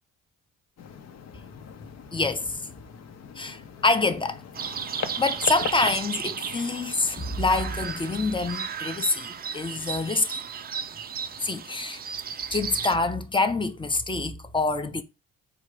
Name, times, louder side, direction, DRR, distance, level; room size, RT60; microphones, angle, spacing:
sound 1, 0.8-8.6, left 7 dB, 60° left, 0.7 m, -40 dB
voice 1, 2.1-2.6 3.4-4.4 5.2-10.4 11.4-12.0 12.5-15.0, left 3 dB, 15° left, 0.6 m, -26 dB
sound 2, 4.5-13.0, right 7 dB, 30° right, 0.4 m, -34 dB
4.3 x 2.5 x 4.7 m
cardioid pair, 90°, 30 cm